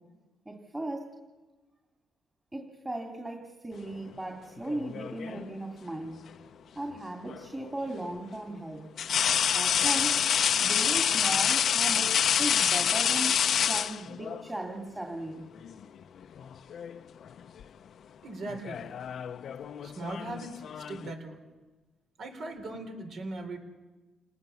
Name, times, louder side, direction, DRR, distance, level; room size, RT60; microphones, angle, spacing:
voice 1, 0.5-1.1 2.5-6.2 6.8-8.8 9.5-10.2 10.6-15.4, right 1 dB, 15° right, 2 dB, 2.7 m, -37 dB
sound 1, 4.7-5.5 7.3-7.4 9.0-14.4 15.6-15.8 16.2-17.0 17.3-17.6 18.5-21.1, left 8 dB, 60° left, 0.7 m, -27 dB
voice 2, 18.2-18.8 19.8-20.5 20.9-21.4 22.2-23.6, right 2 dB, 65° right, 4 dB, 4.4 m, -39 dB
28.5 x 19.0 x 7.1 m, 1.3 s
cardioid pair, 90°, 0 cm